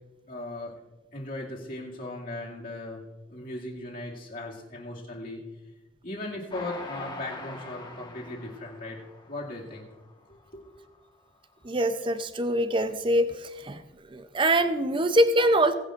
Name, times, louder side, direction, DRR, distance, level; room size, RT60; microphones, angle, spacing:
voice 1, 0.3-0.7 1.1-3.0 3.3-5.4 6.0-9.0 9.3-9.9 10.3-10.6, left 2 dB, 45° left, -3 dB, 2.3 m, -38 dB
Train, 6.5-10.0 10.5-10.6 10.8-10.9, left 2 dB, 20° left, 1.4 m, -43 dB
voice 2, 11.6-13.3 13.6-13.8 14.1-15.7, right 1 dB, 25° right, 10 dB, 0.5 m, -23 dB
21.0 x 10.5 x 2.5 m, 1.1 s
head